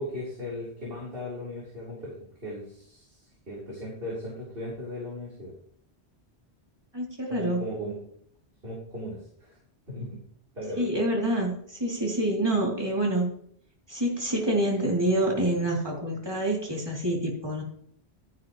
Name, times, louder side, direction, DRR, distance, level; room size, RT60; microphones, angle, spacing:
voice 1, 0.0-5.5 7.3-8.0 8.6-9.6 9.9-10.2 10.5-10.9, left 1 dB, 55° right, -6 dB, 4.3 m, -37 dB
voice 2, 6.9-7.6 10.8-13.3 13.9-17.6, right 1 dB, 20° right, -3 dB, 3.3 m, -27 dB
13.0 x 10.5 x 3.2 m, 0.63 s
omnidirectional pair, 1.2 m